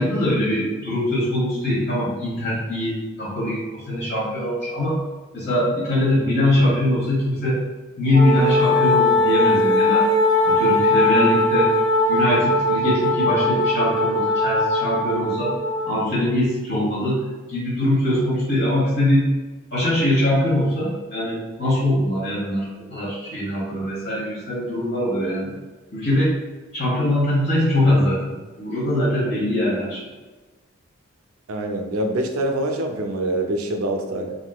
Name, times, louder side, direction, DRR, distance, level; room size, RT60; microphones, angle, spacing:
voice 1, 0.0-5.0 5.3-7.6 8.0-10.1 10.4-11.7 12.1-15.5 15.8-17.2 17.5-19.3 19.7-25.5 25.9-26.3 26.7-28.3 28.6-30.0, left 1 dB, 50° left, -6 dB, 1.0 m, -22 dB
Wind instrument woodwind instrument, 8.1-16.1, left 1 dB, 20° left, 0.3 m, -19 dB
voice 2, 31.5-34.3, right 1 dB, 90° right, 4 dB, 0.5 m, -25 dB
3.6 x 2.6 x 2.2 m, 1.2 s
head